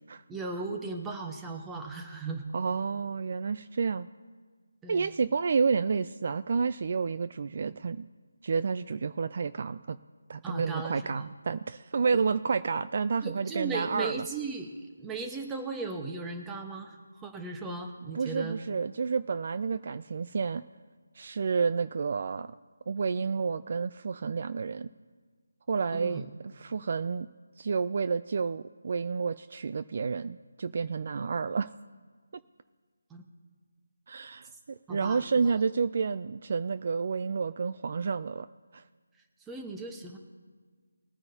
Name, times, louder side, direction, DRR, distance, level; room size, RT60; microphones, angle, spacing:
voice 1, 0.3-2.4 4.8-5.1 10.4-11.3 12.1-12.2 13.2-14.7 15.0-18.6 25.9-26.3 33.1-33.2 34.9-35.2 39.5-40.2, right 3 dB, 10° right, 3 dB, 1.1 m, -37 dB
voice 2, 2.5-4.1 4.9-8.1 8.4-10.0 10.3-14.2 18.1-20.6 21.2-22.5 22.9-24.9 25.7-26.3 26.6-27.3 27.6-31.7 34.1-38.5 38.7-38.8, right 5 dB, 45° right, 13 dB, 0.4 m, -30 dB
21.0 x 9.6 x 2.8 m, 1.5 s
figure-of-eight pair, 160°, 0 cm